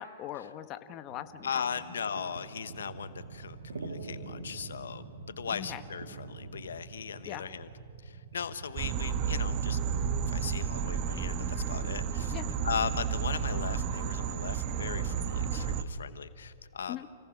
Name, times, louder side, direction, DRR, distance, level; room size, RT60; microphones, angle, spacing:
voice 1, 0.0-1.6 5.5-5.8 7.3-7.5 12.3-12.5 16.9-17.1, left 12 dB, 35° left, 10 dB, 1.0 m, -40 dB
sound 1, 1.1-6.7, right 3 dB, 85° right, 2.4 m, -45 dB
voice 2, 1.4-5.0 5.4-7.7 8.0-9.8 10.3-12.4 12.6-17.1, left 7 dB, 85° left, 13 dB, 0.9 m, -38 dB
Motorcycle / Idling, 2.7-13.4, right 5 dB, 60° right, 3.1 m, -49 dB
sound 2, 8.8-15.8, right 7 dB, 40° right, 1.0 m, -32 dB
29.0 x 17.5 x 6.1 m, 2.4 s
hypercardioid pair, 130°, 0 cm